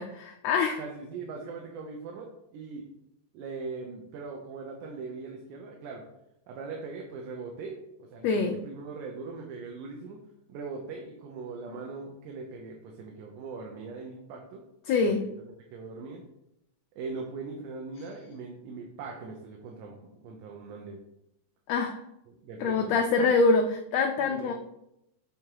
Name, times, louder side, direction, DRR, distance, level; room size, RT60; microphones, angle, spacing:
voice 1, 0.0-0.8 8.2-8.5 14.9-15.2 21.7-22.0 22.6-24.5, left 4 dB, 80° left, 4 dB, 1.5 m, -25 dB
voice 2, 0.8-2.9 3.3-6.0 6.5-10.2 10.5-14.6 15.0-16.2 17.0-21.0 22.3-22.9 23.2-23.3 24.2-24.5, right 4 dB, 80° right, 0 dB, 2.3 m, -40 dB
8.1 x 3.6 x 4.6 m, 0.82 s
omnidirectional pair, 3.6 m